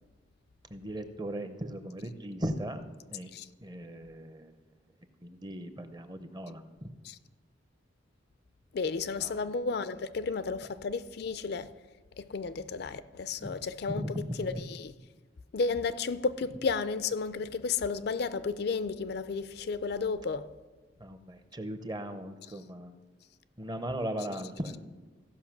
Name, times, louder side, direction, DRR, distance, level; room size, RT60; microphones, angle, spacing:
voice 1, 0.7-2.8 3.1-3.3 3.6-4.5 5.2-6.9 9.2-9.5 13.4-13.5 13.9-14.6 21.0-22.9 23.6-24.8, right 1 dB, 20° right, 0.6 m, -38 dB
voice 2, 8.7-11.7 12.2-14.9 15.5-20.5, left 4 dB, 55° left, 0.4 m, -33 dB
15.5 x 5.5 x 5.9 m
head